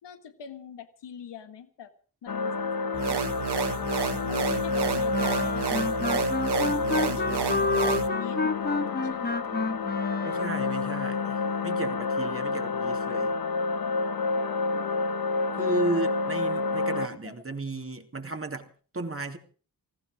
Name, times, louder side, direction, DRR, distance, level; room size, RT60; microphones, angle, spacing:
voice 1, 0.0-1.9 2.2-3.2 4.0-6.0 6.6-7.8 8.1-9.5 14.6-15.0 17.2-17.3, left 8 dB, 85° left, 1.7 m, -43 dB
sound 1, 2.3-17.1, left 4 dB, 55° left, 1.0 m, -29 dB
sound 2, 2.9-8.1, right 8 dB, 75° right, 1.2 m, -30 dB
sound 3, 5.1-10.8, left 3 dB, 25° left, 1.0 m, -29 dB
voice 2, 10.2-13.3 15.5-18.7 18.9-19.4, right 2 dB, 35° right, 2.8 m, -34 dB
18.0 x 15.5 x 5.0 m
supercardioid pair, 40°, 41 cm